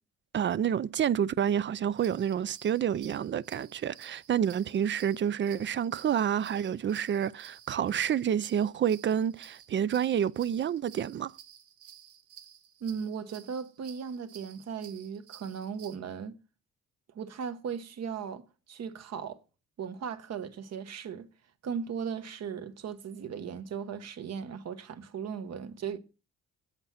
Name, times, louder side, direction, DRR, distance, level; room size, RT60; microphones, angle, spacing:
voice 1, 0.3-11.3, right 9 dB, 40° right, 0.4 m, -29 dB
sound 1, 1.9-16.0, right 9 dB, 85° right, 1.1 m, -53 dB
voice 2, 12.8-16.4 17.1-19.4 19.8-21.3 21.6-26.0, right 7 dB, 60° right, 1.1 m, -37 dB
8.2 x 8.0 x 5.7 m
cardioid pair, 90°, 30 cm